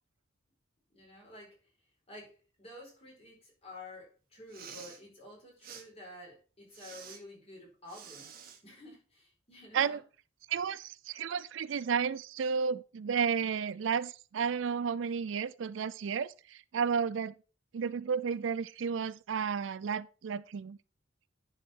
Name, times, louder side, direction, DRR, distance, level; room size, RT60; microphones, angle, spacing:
voice 1, 0.9-1.6 2.1-8.3 8.6-10.0, left 1 dB, 30° left, 4.4 m, -50 dB
Respiratory sounds, 4.4-5.0 5.6-5.8 6.7-7.2 7.9-8.6, right 7 dB, 45° right, 1.5 m, -49 dB
voice 2, 10.5-17.3 17.7-20.8, right 6 dB, 70° right, 0.4 m, -32 dB
10.5 x 4.9 x 4.5 m
head